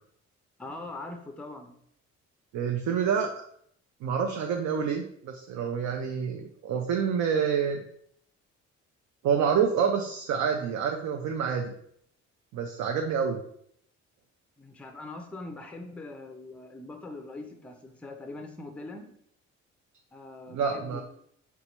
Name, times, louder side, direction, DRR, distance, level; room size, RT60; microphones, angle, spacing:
voice 1, 0.6-1.8 14.6-19.1 20.1-21.0, left 2 dB, 5° left, 5 dB, 0.4 m, -42 dB
voice 2, 2.5-3.3 4.0-7.8 9.2-11.7 12.5-13.4 20.5-21.0, right 7 dB, 70° right, 2 dB, 0.5 m, -27 dB
3.9 x 2.3 x 2.9 m, 0.67 s
cardioid pair, 90°, 30 cm